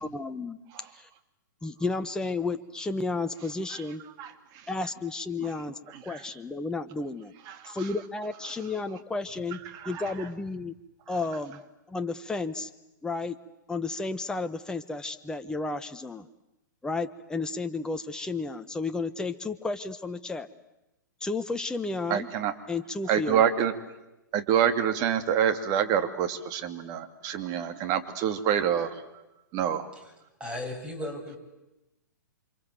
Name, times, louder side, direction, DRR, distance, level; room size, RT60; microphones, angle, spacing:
voice 1, 0.0-0.6 0.9-1.1 1.6-4.0 4.7-7.3 7.7-10.7 11.1-11.6 11.9-12.7 13.0-13.4 13.7-16.3 16.8-20.5 21.2-22.3 22.7-23.4, left 3 dB, 5° left, 8 dB, 1.1 m, -32 dB
voice 2, 7.5-7.8 9.7-10.0 22.1-22.5 23.1-23.7 24.3-29.0 29.5-29.9, right 9 dB, 35° right, 7 dB, 2.8 m, -27 dB
voice 3, 30.4-31.4, left 1 dB, 10° right, 3 dB, 7.7 m, -36 dB
29.0 x 25.5 x 7.9 m, 0.97 s
figure-of-eight pair, 115°, 11 cm